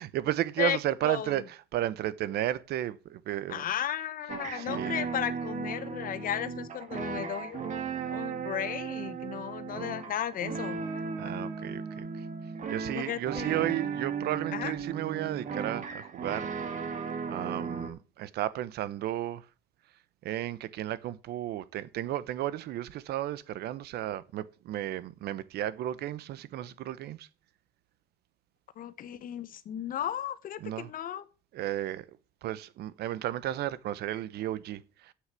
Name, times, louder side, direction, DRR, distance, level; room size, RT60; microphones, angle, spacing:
voice 1, 0.0-3.6 4.5-5.0 11.2-12.3 12.7-16.5 17.3-19.4 20.2-27.3 30.6-30.9 31.5-32.0 32.4-35.1, right 13 dB, 70° right, 0.9 m, -33 dB
voice 2, 0.6-1.3 3.5-7.8 8.1-10.8 12.9-13.8 14.5-14.7 28.8-31.3, left 10 dB, 55° left, 1.0 m, -35 dB
sound 1, 4.3-17.9, right 5 dB, 45° right, 2.0 m, -36 dB
8.0 x 6.5 x 8.2 m
cardioid pair, 110°, 17 cm